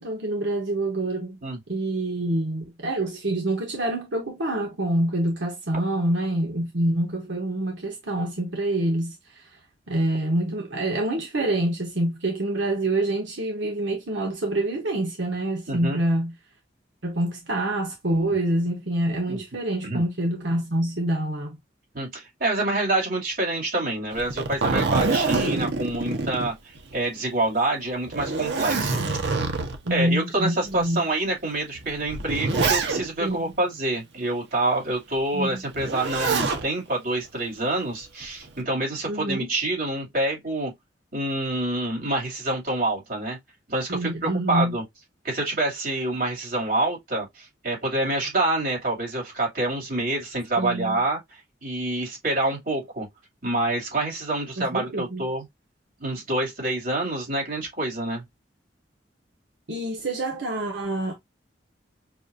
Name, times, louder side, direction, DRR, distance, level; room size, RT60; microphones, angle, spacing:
voice 1, 0.0-1.4 1.7-9.6 9.9-16.3 17.0-21.6 25.4-25.6 29.8-31.0 33.2-33.5 35.3-35.6 39.1-39.5 43.9-44.8 50.6-51.0 54.6-55.2 59.7-61.1, right 1 dB, 85° right, 1.1 m, -26 dB
voice 2, 15.7-16.0 19.3-19.4 19.8-20.0 21.9-29.4 29.9-40.7 41.1-43.4 43.7-44.8 45.2-53.1 53.4-55.4 56.0-58.2, right 2 dB, 55° right, 2.7 m, -27 dB
Zipper (clothing), 24.1-27.0 27.4-27.5 28.1-29.9 30.7-30.8 31.7-33.3 35.7-36.6 38.0-38.5, right 3 dB, 70° right, 0.9 m, -25 dB
6.1 x 2.5 x 2.6 m
head